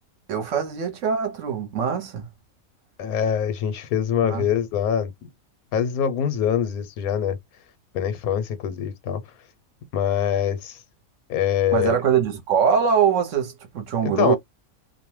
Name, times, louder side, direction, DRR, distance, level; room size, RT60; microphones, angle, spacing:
voice 1, 0.3-2.3 4.2-4.5 11.7-14.4, right 7 dB, 65° right, 1.0 m, -23 dB
voice 2, 3.0-5.1 5.7-7.4 7.9-9.2 9.9-10.8 11.3-12.0 14.0-14.4, left 8 dB, 80° left, 1.1 m, -24 dB
2.5 x 2.1 x 3.0 m
omnidirectional pair, 1.5 m